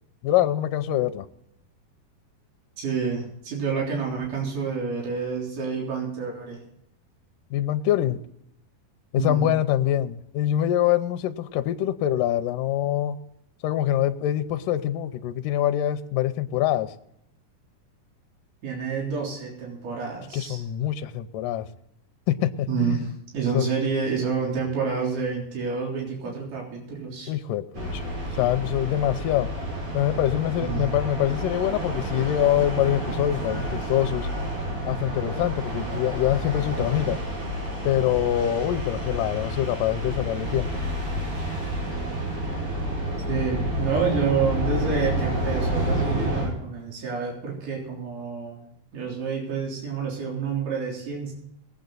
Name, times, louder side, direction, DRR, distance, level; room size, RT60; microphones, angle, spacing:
voice 1, 0.2-1.3 7.5-8.2 9.1-13.2 13.6-16.9 20.3-21.7 22.3-23.0 23.5-23.7 27.3-28.1 28.4-29.5 29.9-34.3 34.8-37.2 37.8-40.8, left 12 dB, 75° left, 8 dB, 2.2 m, -24 dB
voice 2, 2.8-6.6 9.1-9.5 18.6-20.6 22.7-27.3 30.6-31.0 43.3-51.3, right 5 dB, 55° right, -2 dB, 4.9 m, -28 dB
sound 1, 27.7-46.5, equal, 70° right, 7.5 m, -29 dB
21.0 x 8.7 x 4.0 m, 0.75 s
omnidirectional pair, 4.4 m